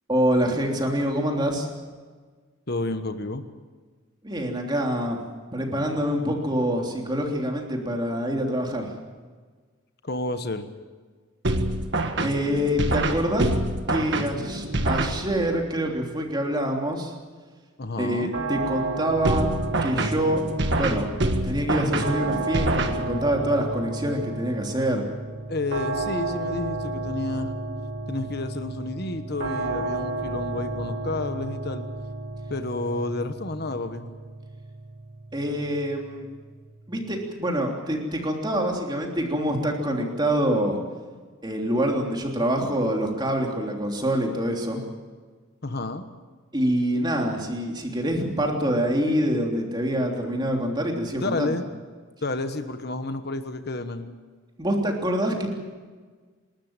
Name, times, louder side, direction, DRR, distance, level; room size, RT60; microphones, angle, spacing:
voice 1, 0.1-1.7 4.2-5.2 5.5-8.9 12.2-13.5 13.9-17.1 18.0-19.5 19.8-20.4 20.7-21.1 21.4-25.0 35.3-36.2 36.9-40.8 41.4-44.8 46.5-51.6 54.6-55.5, equal, 20° right, 1 dB, 3.3 m, -25 dB
voice 2, 2.7-3.4 10.0-10.7 17.8-18.3 25.5-27.5 28.1-31.9 32.5-34.1 45.6-46.1 51.1-51.6 52.2-54.1, left 2 dB, 50° left, 8 dB, 1.3 m, -30 dB
sound 1, 11.4-15.6 19.2-23.5, right 2 dB, 55° right, 1.7 m, -26 dB
sound 2, 18.3-37.2, right 2 dB, 90° right, 2.5 m, -33 dB
28.0 x 13.0 x 9.0 m, 1.5 s
head